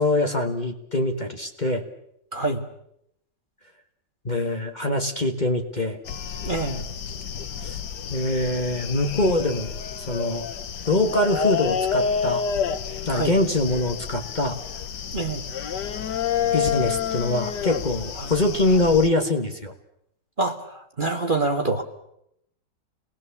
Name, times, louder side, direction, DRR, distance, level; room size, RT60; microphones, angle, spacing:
voice 1, 0.0-1.8 4.2-6.0 7.6-7.8 8.1-9.7 10.0-10.5 10.8-12.4 12.9-14.6 16.5-19.7, left 2 dB, 25° left, 4 dB, 1.7 m, -24 dB
voice 2, 2.3-2.6 6.4-6.8 13.1-13.3 15.1-15.4 18.2-18.3 20.4-21.8, right 2 dB, 30° right, 3 dB, 1.6 m, -26 dB
sound 1, 6.0-19.1, left 7 dB, 70° left, 1.7 m, -29 dB
28.5 x 20.0 x 7.2 m, 0.77 s
omnidirectional pair, 1.9 m